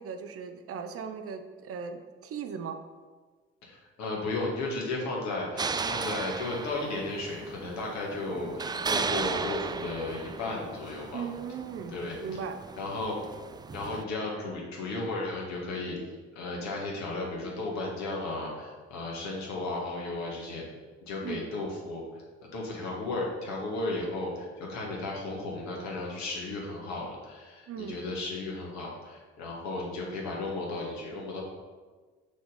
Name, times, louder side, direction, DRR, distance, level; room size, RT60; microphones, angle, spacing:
voice 1, 0.0-2.8 11.1-11.9 12.2-12.5 21.2-21.5 27.7-28.0, right 6 dB, 45° right, 7 dB, 0.8 m, -37 dB
voice 2, 3.6-11.2 11.9-12.2 12.8-13.2 13.7-16.0 16.3-20.6 21.0-22.2 22.5-31.4, left 2 dB, 55° left, -2 dB, 2.2 m, -34 dB
sound 1, 5.6-14.0, right 4 dB, 15° right, 0.3 m, -36 dB
6.4 x 4.6 x 5.3 m, 1.4 s
figure-of-eight pair, 55°, 32 cm